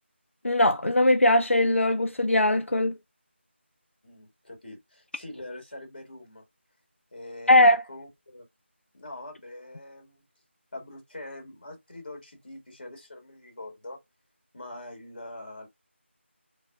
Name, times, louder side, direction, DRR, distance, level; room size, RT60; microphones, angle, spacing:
voice 1, 0.4-3.0 7.5-7.8, left 1 dB, 85° left, 0.4 m, -20 dB
voice 2, 4.0-6.4 7.1-8.4 8.9-10.2 10.7-14.0 14.5-15.7, left 1 dB, 45° left, 1.5 m, -43 dB
4.6 x 2.3 x 2.2 m
figure-of-eight pair, 170°, 7 cm